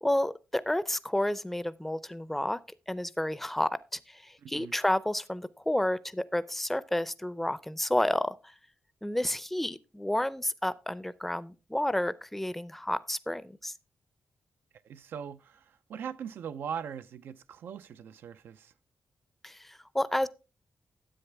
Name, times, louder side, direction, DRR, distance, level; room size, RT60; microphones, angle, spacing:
voice 1, 0.0-2.6 2.9-3.8 4.1-8.5 9.0-13.7 19.4-20.3, left 1 dB, 5° left, 0.5 m, -30 dB
voice 2, 4.4-4.7 14.8-18.7, right 8 dB, 90° right, 0.5 m, -40 dB
9.9 x 7.9 x 3.4 m
cardioid pair, 95°, 4 cm